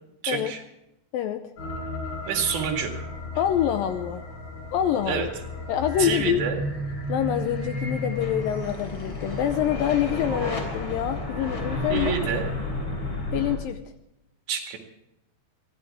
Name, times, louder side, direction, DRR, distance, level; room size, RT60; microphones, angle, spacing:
voice 1, 0.2-0.6 2.3-2.9 5.1-5.3 6.0-6.6 11.9-12.5 14.5-14.8, right 7 dB, 85° right, 2 dB, 4.4 m, -27 dB
voice 2, 1.1-1.5 3.4-4.2 4.7-5.3 5.7-6.4 7.1-12.3 13.3-13.8, left 10 dB, 80° left, 8 dB, 2.2 m, -26 dB
sound 1, 1.6-13.6, left 1 dB, 30° left, 3.7 m, -32 dB
22.5 x 16.5 x 3.6 m, 0.85 s
omnidirectional pair, 4.8 m